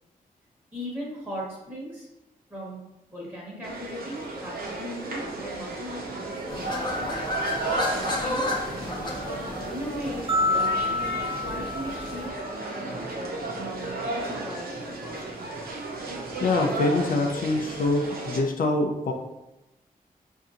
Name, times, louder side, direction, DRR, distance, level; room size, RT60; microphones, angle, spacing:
voice 1, 0.7-2.1 2.5-2.8 3.1-7.2 8.0-15.6, equal, 15° right, -5 dB, 1.1 m, -39 dB
sound 1, 3.6-18.4, right 2 dB, 85° right, 0.7 m, -34 dB
sound 2, 6.5-12.3, left 1 dB, 30° left, 0.7 m, -32 dB
sound 3, 10.3-12.6, left 2 dB, 40° right, 0.7 m, -28 dB
voice 2, 16.4-19.1, left 2 dB, 70° left, 3 dB, 0.5 m, -25 dB
5.7 x 2.6 x 2.5 m, 0.96 s
wide cardioid pair, 145°, 15 cm